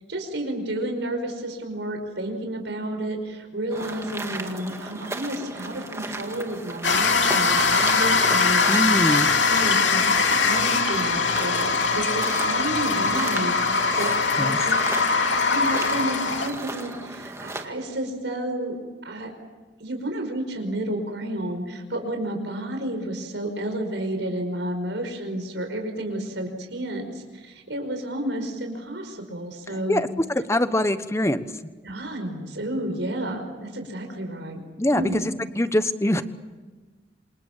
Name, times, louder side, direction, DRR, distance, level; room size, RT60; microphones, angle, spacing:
voice 1, 0.1-14.8 15.1-18.8 19.0-19.3 19.8-30.0 31.8-34.6 34.9-35.2, right 1 dB, 75° right, 4 dB, 5.3 m, -31 dB
sound 1, 3.7-17.7, right 2 dB, 15° right, 2.0 m, -36 dB
sound 2, 6.8-16.5, left 4 dB, 85° left, 2.8 m, -22 dB
voice 2, 8.7-9.3 14.0-14.6 29.9-30.1 30.5-31.4 34.8-35.2 35.6-36.2, left 1 dB, 15° left, 12 dB, 1.1 m, -23 dB
27.5 x 27.0 x 7.3 m, 1.3 s
head